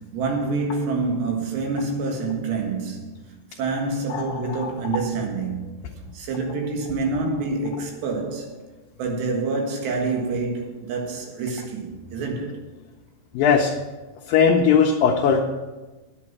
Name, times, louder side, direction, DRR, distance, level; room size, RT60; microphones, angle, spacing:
voice 1, 0.0-3.2 3.6-5.7 6.1-8.5 9.0-12.5, right 3 dB, 85° right, 3.8 m, -27 dB
voice 2, 4.1-4.7 13.3-13.7 14.3-15.4, left 6 dB, 75° left, 2.1 m, -19 dB
9.9 x 9.8 x 5.9 m
omnidirectional pair, 4.8 m